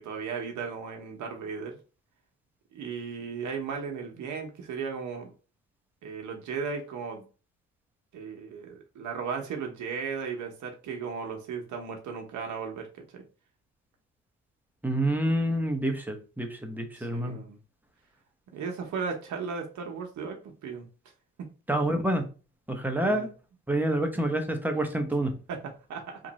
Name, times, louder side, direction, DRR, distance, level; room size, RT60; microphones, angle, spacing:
voice 1, 0.0-1.8 2.7-5.3 6.0-7.2 8.1-13.2 17.0-17.6 18.5-20.8 21.4-21.5 23.0-23.3 25.5-26.2, right 5 dB, 70° right, 3 dB, 0.9 m, -36 dB
voice 2, 14.8-17.4 21.7-22.2 22.7-23.3 23.7-25.3, right 1 dB, 5° right, 5 dB, 0.8 m, -27 dB
3.0 x 2.5 x 4.0 m, 0.36 s
cardioid pair, 90°, 30 cm